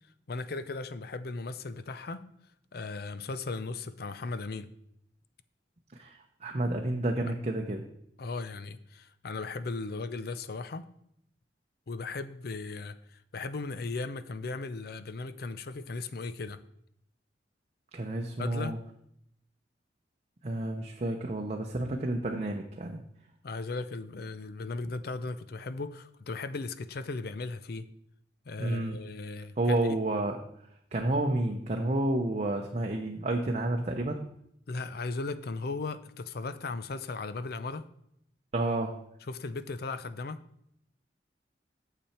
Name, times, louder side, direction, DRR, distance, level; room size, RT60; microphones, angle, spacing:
voice 1, 0.3-2.2 2.7-4.7 8.2-10.8 11.9-16.6 18.4-18.8 23.4-27.9 28.5-30.0 34.7-37.9 39.2-40.4, left 3 dB, 60° left, 13 dB, 0.5 m, -37 dB
voice 2, 5.9-7.9 17.9-18.8 20.4-23.0 28.6-29.0 29.6-30.4 30.9-34.2 38.5-39.0, right 1 dB, 40° right, 2 dB, 0.7 m, -30 dB
8.6 x 7.0 x 4.3 m, 0.73 s
head